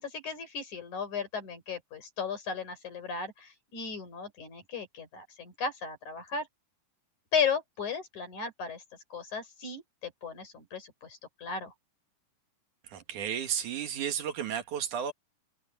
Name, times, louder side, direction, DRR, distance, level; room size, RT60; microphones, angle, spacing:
voice 1, 0.0-6.5 7.3-8.8 9.1-11.7, left 6 dB, 70° left, 6.7 m, -35 dB
voice 2, 12.9-15.1, right 9 dB, 75° right, 3.2 m, -33 dB
omnidirectional pair, 3.5 m